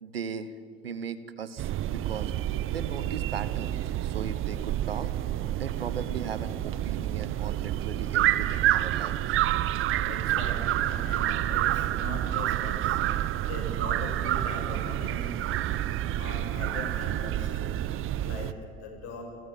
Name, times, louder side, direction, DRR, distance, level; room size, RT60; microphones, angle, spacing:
voice 1, 0.0-0.5 0.8-2.3 2.7-5.1 5.6-9.2, right 6 dB, 90° right, 13 dB, 1.1 m, -38 dB
sound 1, 1.6-18.5, right 13 dB, 45° right, 0.9 m, -28 dB
voice 2, 10.0-13.0 13.5-15.5 16.2-17.8 18.2-18.5 18.8-19.2, left 2 dB, 60° left, 2 dB, 6.3 m, -40 dB
27.5 x 14.0 x 9.2 m, 2.3 s
hypercardioid pair, 70°, 29 cm